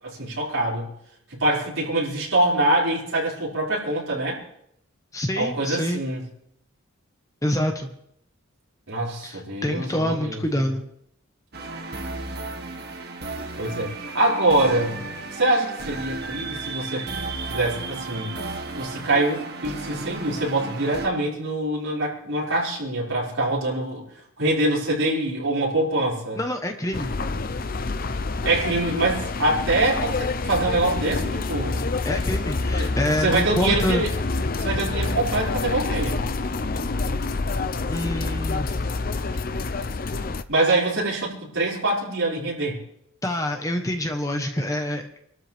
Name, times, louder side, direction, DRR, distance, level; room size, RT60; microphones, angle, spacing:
voice 1, 0.0-0.9 1.3-4.4 5.3-6.2 8.9-10.7 13.6-15.1 15.4-17.1 17.5-18.3 18.8-24.1 24.4-26.4 28.4-31.9 32.8-32.9 33.2-34.1 34.6-36.2 40.5-42.8, right 2 dB, 70° right, -6 dB, 5.8 m, -24 dB
voice 2, 5.1-6.0 7.4-7.9 9.2-10.8 26.3-27.1 32.0-34.0 37.9-38.8 43.2-45.1, left 1 dB, 15° left, 4 dB, 1.2 m, -26 dB
sound 1, 11.5-21.1, right 3 dB, 50° right, 1.8 m, -34 dB
sound 2, 26.9-40.4, left 3 dB, 40° left, 0.6 m, -27 dB
28.0 x 13.0 x 3.5 m, 0.74 s
head